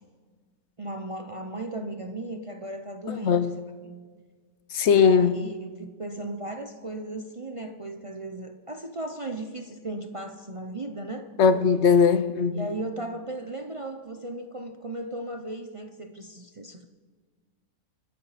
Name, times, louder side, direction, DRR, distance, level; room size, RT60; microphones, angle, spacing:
voice 1, 0.8-3.4 3.8-4.0 4.9-11.3 12.5-16.8, right 2 dB, 40° right, 0.4 m, -36 dB
voice 2, 3.1-3.6 4.7-5.4 11.4-12.7, left 6 dB, 55° left, 0.9 m, -20 dB
28.0 x 9.9 x 4.1 m
omnidirectional pair, 1.6 m